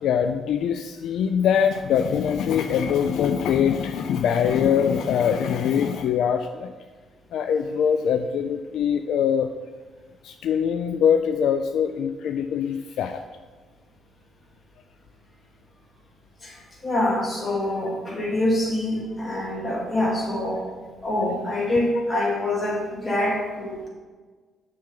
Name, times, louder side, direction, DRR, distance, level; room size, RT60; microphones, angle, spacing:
voice 1, 0.0-6.7 7.3-9.5 10.2-13.2, left 8 dB, 80° left, 7 dB, 0.3 m, -23 dB
voice 2, 16.4-20.7 21.0-23.9, left 1 dB, 35° left, -3 dB, 2.3 m, -25 dB
7.4 x 5.9 x 3.9 m, 1.4 s
cardioid pair, 90°, 0 cm